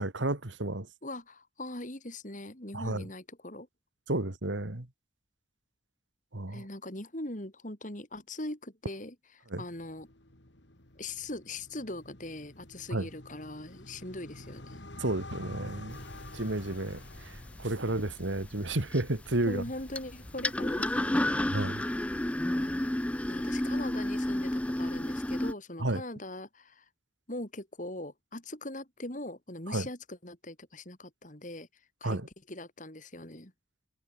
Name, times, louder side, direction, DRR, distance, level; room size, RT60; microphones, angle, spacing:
voice 1, 0.0-0.9 2.7-3.0 4.1-4.9 6.3-6.6 9.5-9.6 12.9-13.1 15.0-16.0 16.3-19.6 21.5-21.8 25.8-26.0 29.7-29.9 32.0-32.3, right 2 dB, 80° right, 2.2 m, -32 dB
voice 2, 1.0-3.7 6.5-9.2 9.6-10.1 11.0-14.9 17.9-18.1 19.5-21.5 21.9-22.0 22.5-23.0 23.3-26.9 27.3-31.7 32.0-32.2 32.5-33.5, left 2 dB, 40° left, 3.6 m, -41 dB
sound 1, 9.7-22.7, left 2 dB, 70° left, 3.5 m, -50 dB
sound 2, 15.9-25.5, left 1 dB, 5° left, 0.3 m, -32 dB
head